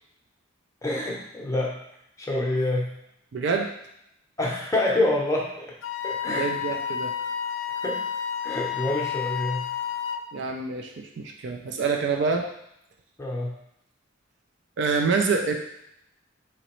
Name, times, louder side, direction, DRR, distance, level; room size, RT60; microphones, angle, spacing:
voice 1, 0.8-1.8 2.2-2.9 4.4-5.7 6.0-6.5 7.8-8.0 8.4-9.6 13.2-13.5, left 1 dB, 15° left, -3 dB, 0.7 m, -26 dB
voice 2, 3.3-3.7 6.3-7.1 10.3-12.5 14.8-15.5, right 4 dB, 60° right, 2 dB, 0.4 m, -26 dB
Wind instrument woodwind instrument, 5.8-10.3, left 8 dB, 75° left, 0.3 m, -30 dB
4.0 x 2.9 x 3.0 m, 0.77 s
head